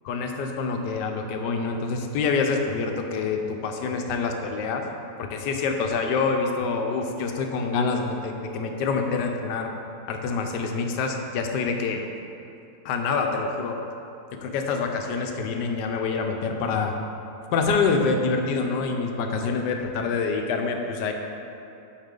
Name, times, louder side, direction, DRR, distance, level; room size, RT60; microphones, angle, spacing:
voice 1, 0.0-4.8 5.2-9.7 10.1-12.0 12.8-13.8 14.3-17.0 17.5-21.1, left 4 dB, 90° left, 4 dB, 1.3 m, -26 dB
8.8 x 4.7 x 3.7 m, 2.7 s
omnidirectional pair, 1.8 m